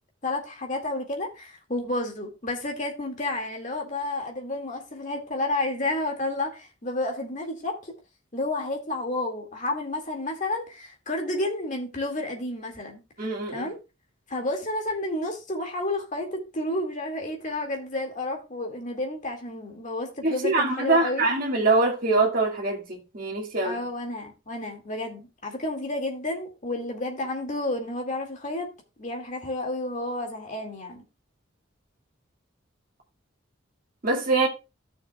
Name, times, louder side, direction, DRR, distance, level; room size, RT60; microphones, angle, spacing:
voice 1, 0.2-7.9 8.3-13.0 13.5-13.8 14.3-21.3 23.6-28.7 29.0-31.0, left 2 dB, 40° left, 2.0 m, -31 dB
voice 2, 13.2-13.7 20.2-23.8 34.0-34.5, right 3 dB, 45° right, 1.9 m, -24 dB
14.5 x 6.6 x 2.3 m
head